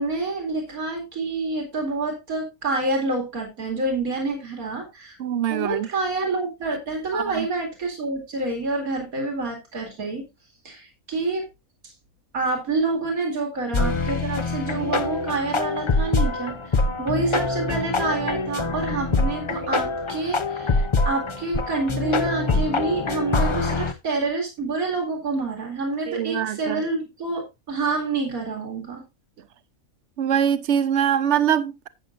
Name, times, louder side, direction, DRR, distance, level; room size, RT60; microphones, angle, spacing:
voice 1, 0.0-5.2 5.5-10.3 10.6-11.4 12.3-29.0, right 3 dB, 85° right, 2.9 m, -27 dB
voice 2, 5.2-5.9 7.1-7.5 26.1-26.8 30.2-31.9, right 9 dB, 60° right, 1.1 m, -23 dB
sound 1, 13.7-23.9, left 3 dB, 40° left, 0.4 m, -24 dB
12.0 x 8.2 x 2.5 m
omnidirectional pair, 1.5 m